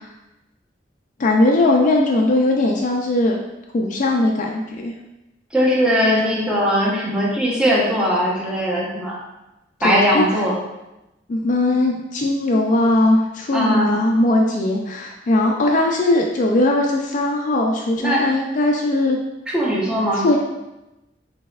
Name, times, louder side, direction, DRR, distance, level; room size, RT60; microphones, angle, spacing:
voice 1, 1.2-3.4 3.7-4.9 9.8-10.2 11.3-19.2 20.2-20.4, left 2 dB, 45° left, 0 dB, 0.4 m, -19 dB
voice 2, 5.5-9.2 9.8-10.6 13.5-14.0 18.0-18.2 19.5-20.3, equal, 5° right, -5 dB, 0.8 m, -19 dB
4.1 x 3.4 x 2.3 m, 0.96 s
head